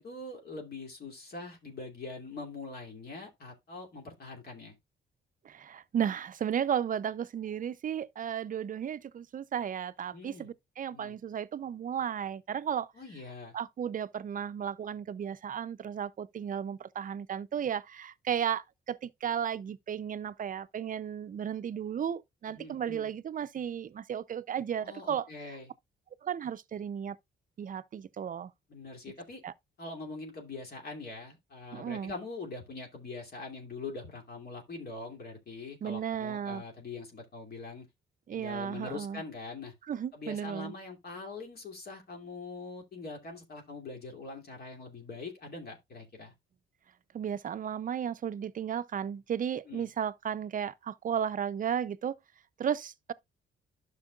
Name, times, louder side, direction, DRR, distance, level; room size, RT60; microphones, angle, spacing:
voice 1, 0.0-4.8 10.1-10.5 10.9-11.2 12.9-13.5 22.5-23.1 24.8-25.7 28.7-29.4 29.8-37.9 38.3-39.7 40.1-46.3 49.7-49.9, left 3 dB, 55° left, 2.7 m, -43 dB
voice 2, 5.4-12.9 13.5-25.6 26.2-27.2 27.6-28.5 29.4-29.5 31.7-32.1 35.8-36.6 38.3-39.2 39.9-40.7 47.1-52.2 52.6-53.1, right 8 dB, 40° right, 0.6 m, -34 dB
11.5 x 6.1 x 2.4 m
cardioid pair, 90°, 20 cm